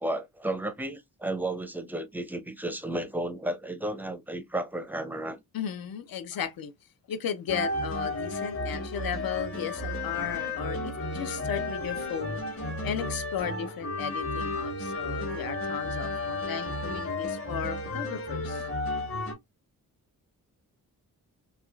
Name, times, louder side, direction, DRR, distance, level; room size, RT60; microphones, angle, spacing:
voice 1, 0.0-5.4, right 1 dB, 5° right, 0.4 m, -33 dB
voice 2, 5.5-6.7 7.1-12.4 12.8-18.7, left 8 dB, 70° left, 0.6 m, -35 dB
sound 1, 7.5-19.3, left 2 dB, 40° left, 1.0 m, -33 dB
3.4 x 2.3 x 2.2 m
wide cardioid pair, 105°, 36 cm